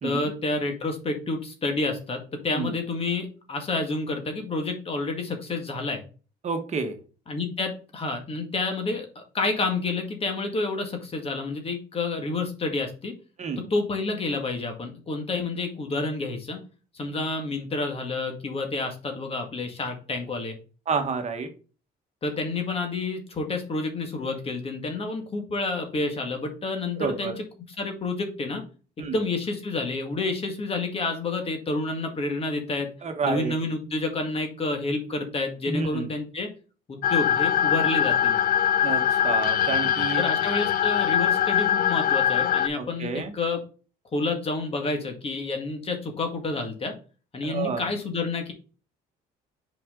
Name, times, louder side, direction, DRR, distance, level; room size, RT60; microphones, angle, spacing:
voice 1, 0.0-6.0 7.3-13.1 13.7-16.6 16.9-20.6 22.2-27.3 27.8-28.6 29.0-32.9 33.2-36.5 36.9-38.4 40.2-43.6 44.1-46.9 47.3-48.5, left 3 dB, 35° left, 4 dB, 1.9 m, -29 dB
voice 2, 6.4-7.0 13.4-13.7 20.9-21.5 27.0-27.3 29.0-29.2 33.0-33.5 35.7-36.1 38.8-40.2 42.8-43.3 47.4-47.8, right 5 dB, 40° right, 6 dB, 1.4 m, -29 dB
sound 1, 37.0-42.7, left 9 dB, 60° left, 0.6 m, -22 dB
5.8 x 5.0 x 3.7 m, 0.36 s
cardioid pair, 110°, 17 cm